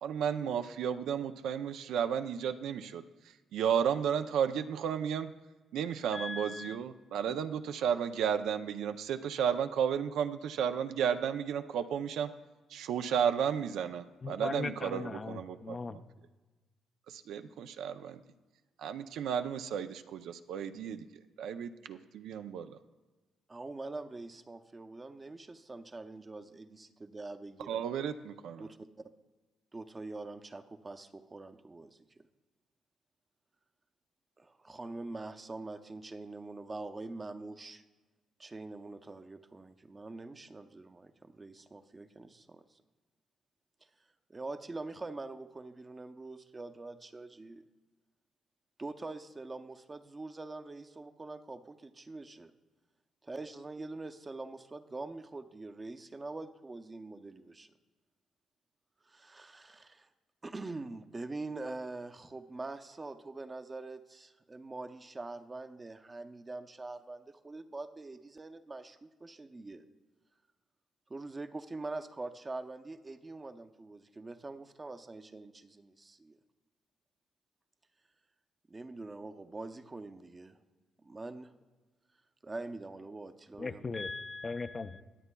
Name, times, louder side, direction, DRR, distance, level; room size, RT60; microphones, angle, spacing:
voice 1, 0.0-5.3 5.7-12.3 12.7-16.0 17.1-18.2 18.8-21.1 21.4-22.8 27.7-28.7, right 8 dB, 80° right, 9 dB, 0.4 m, -33 dB
voice 2, 6.1-6.8 14.2-16.0 83.6-85.0, left 3 dB, 30° left, 11 dB, 0.5 m, -38 dB
voice 3, 23.5-27.8 28.6-29.1 29.7-32.3 34.4-37.8 38.4-42.8 44.3-47.6 48.8-52.5 53.2-57.7 59.1-60.1 60.4-69.8 71.1-76.4 78.7-80.6 81.0-81.5 82.4-83.8, right 2 dB, 25° right, 8 dB, 0.6 m, -44 dB
21.0 x 8.1 x 2.2 m, 1.3 s
cardioid pair, 90°, 0 cm